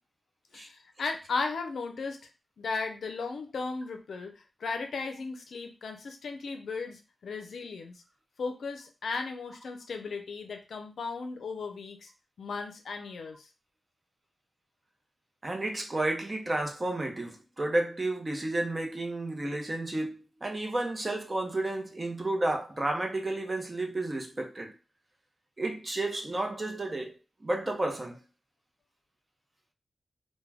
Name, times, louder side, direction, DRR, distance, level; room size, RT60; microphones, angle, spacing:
voice 1, 0.5-2.3 2.6-7.9 8.4-12.1 12.4-13.5, left 4 dB, 80° left, 0.5 m, -36 dB
voice 2, 15.4-24.7 25.6-27.1 27.4-28.2, right 2 dB, 30° right, 0.6 m, -31 dB
2.2 x 2.1 x 3.3 m
wide cardioid pair, 90°, 0 cm